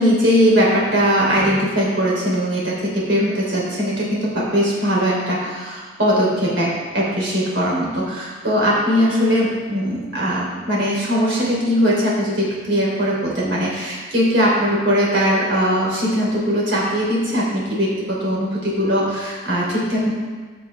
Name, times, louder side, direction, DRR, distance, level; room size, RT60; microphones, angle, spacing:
voice 1, 0.0-20.1, equal, 70° right, -5 dB, 3.3 m, -20 dB
15.0 x 6.2 x 3.4 m, 1.4 s
head